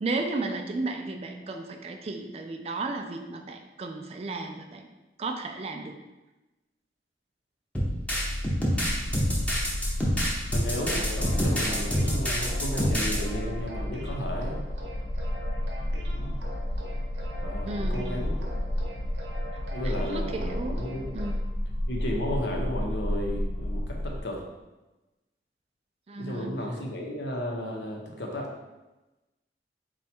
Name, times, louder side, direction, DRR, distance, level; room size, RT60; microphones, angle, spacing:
voice 1, 0.0-4.9 5.2-6.0 17.7-18.1 19.5-20.8 21.1-21.4 26.1-26.5, right 3 dB, 35° right, 4 dB, 0.3 m, -34 dB
sound 1, 7.7-13.2, equal, 10° left, 0.6 m, -27 dB
sound 2, 8.7-24.2, left 1 dB, 55° left, 0.4 m, -32 dB
voice 2, 10.5-14.6 16.1-16.3 17.4-18.4 19.7-21.1 21.9-24.4 26.2-28.5, equal, 85° left, 0 dB, 0.8 m, -34 dB
sound 3, 10.8-21.3, equal, 80° right, 0.7 m, -43 dB
4.1 x 2.3 x 4.3 m, 1.1 s
head